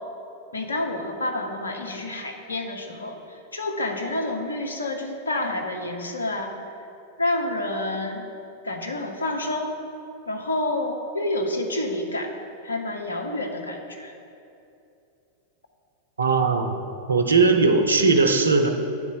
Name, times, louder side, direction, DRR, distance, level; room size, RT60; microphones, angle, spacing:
voice 1, 0.5-6.6 7.2-8.3 8.6-9.7 10.3-12.3 12.6-14.1, left 2 dB, 75° left, 3 dB, 0.7 m, -28 dB
voice 2, 16.2-16.7 17.1-18.7, right 4 dB, 75° right, 5 dB, 0.6 m, -19 dB
8.5 x 4.1 x 5.3 m, 2.7 s
figure-of-eight pair, 90°, 0 cm